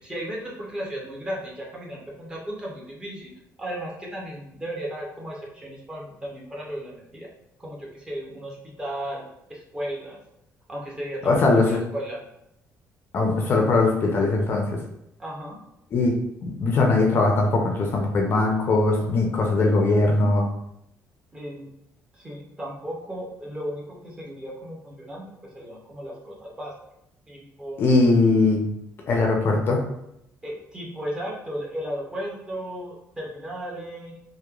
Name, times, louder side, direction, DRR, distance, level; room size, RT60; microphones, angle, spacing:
voice 1, 0.0-3.3 3.6-7.3 7.6-9.2 9.5-10.2 10.7-12.2 15.2-15.6 21.3-21.7 22.1-26.7 27.3-27.9 30.4-34.1, equal, 15° right, -3 dB, 0.5 m, -35 dB
voice 2, 11.3-11.8 13.1-14.7 15.9-16.1 16.4-20.5 27.8-28.6 29.1-29.8, left 3 dB, 40° left, 1 dB, 0.4 m, -20 dB
2.9 x 2.1 x 2.3 m, 0.79 s
cardioid pair, 170°, 6 cm